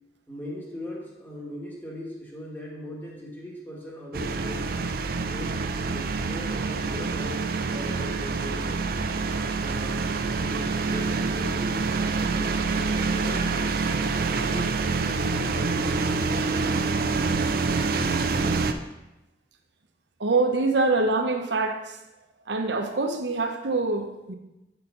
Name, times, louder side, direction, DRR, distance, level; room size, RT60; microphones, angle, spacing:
voice 1, 0.3-4.9 5.3-8.9 9.6-13.7 14.0-17.2 17.8-18.6, left 1 dB, 10° left, -4 dB, 1.7 m, -39 dB
sound 1, 4.1-18.7, right 4 dB, 55° right, 0.5 m, -26 dB
voice 2, 20.2-22.0 22.5-24.3, right 3 dB, 80° right, 5 dB, 0.9 m, -25 dB
8.7 x 5.7 x 3.9 m, 0.98 s
head